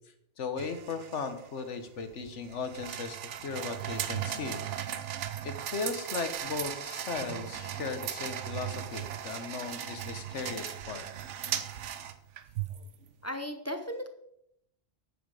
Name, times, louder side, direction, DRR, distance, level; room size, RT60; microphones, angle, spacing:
voice 1, 0.4-4.6 5.4-11.0, left 4 dB, 85° left, 8 dB, 1.4 m, -37 dB
sound 1, 0.6-13.0, right 10 dB, 90° right, 1.1 m, -37 dB
voice 2, 13.2-14.1, equal, 15° left, 6 dB, 0.7 m, -36 dB
9.2 x 8.6 x 4.8 m, 0.77 s
omnidirectional pair, 1.2 m